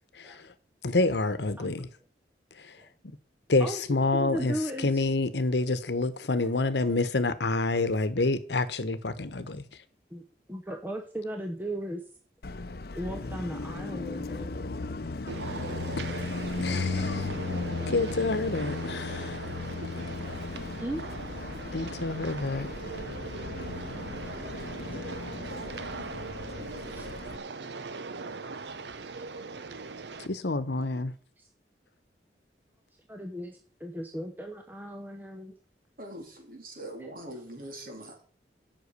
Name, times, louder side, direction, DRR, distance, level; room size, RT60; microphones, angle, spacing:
voice 1, 0.8-1.9 3.5-4.5 4.8-9.6 16.6-17.3 17.9-19.4 21.7-22.7 30.3-31.1, left 3 dB, 75° left, 1.0 m, -27 dB
voice 2, 4.2-5.0 7.7-7.8 10.1-10.2 10.5-12.0 13.0-14.6 20.3-20.4 20.7-21.0 23.4-23.5 25.4-25.5 27.0-27.1 30.3-30.4 31.4-31.5 33.1-35.5, right 1 dB, 10° right, 0.9 m, -37 dB
Car passing by, 12.4-27.4, left 3 dB, 60° left, 0.7 m, -36 dB
sound 1, 15.3-30.3, right 4 dB, 75° right, 0.8 m, -40 dB
voice 3, 36.0-38.3, right 1 dB, 50° right, 3.1 m, -42 dB
8.2 x 6.2 x 8.2 m
head